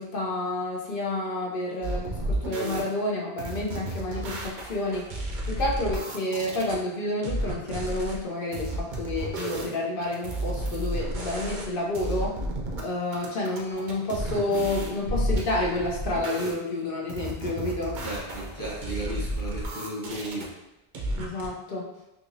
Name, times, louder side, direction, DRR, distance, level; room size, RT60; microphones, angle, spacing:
voice 1, 0.0-12.4 12.8-18.0 21.2-21.9, left 2 dB, 60° left, -3 dB, 0.8 m, -30 dB
sound 1, 1.8-2.8 3.4-6.8 7.2-8.2 8.5-9.8 10.0-11.7 11.9-12.8 13.1-16.5 17.1-20.5 20.9-21.5, right 1 dB, 55° right, 0.7 m, -32 dB
voice 2, 18.0-20.5, right 1 dB, 20° left, -5 dB, 0.8 m, -35 dB
3.6 x 2.9 x 2.6 m, 0.89 s
omnidirectional pair, 1.1 m